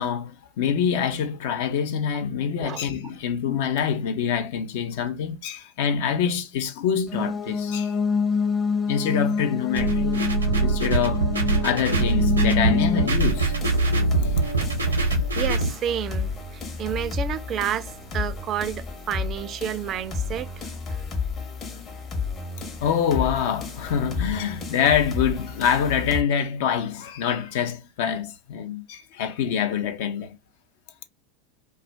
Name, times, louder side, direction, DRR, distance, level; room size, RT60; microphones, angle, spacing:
voice 1, 0.0-7.9 8.9-11.3 11.6-13.6 14.1-14.4 22.8-30.4, left 7 dB, 60° left, 0.5 m, -25 dB
sound 1, 7.1-13.1, left 5 dB, 5° left, 0.6 m, -26 dB
sound 2, 9.7-15.7, right 3 dB, 85° right, 0.6 m, -23 dB
sound 3, 13.2-26.2, left 4 dB, 35° left, 0.9 m, -32 dB
voice 2, 15.4-21.0, right 10 dB, 40° right, 0.3 m, -30 dB
2.3 x 2.1 x 3.1 m
figure-of-eight pair, 80°, 0 cm